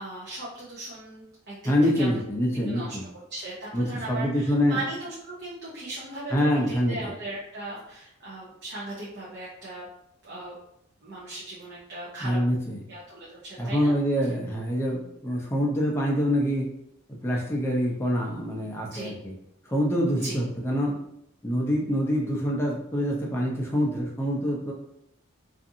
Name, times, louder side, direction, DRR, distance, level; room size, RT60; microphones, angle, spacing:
voice 1, 0.0-2.1 2.7-3.0 3.3-6.3 6.7-9.9 10.2-10.6 11.0-12.4 12.9-13.9 18.9-19.1 20.2-20.4, right 2 dB, 50° right, -7 dB, 0.6 m, -38 dB
voice 2, 1.6-3.0 3.7-4.8 6.3-7.1 12.2-12.8 13.6-16.7 17.1-19.3 19.7-20.9 21.4-24.7, equal, 10° left, -2 dB, 0.4 m, -25 dB
2.6 x 2.4 x 2.6 m, 0.77 s
head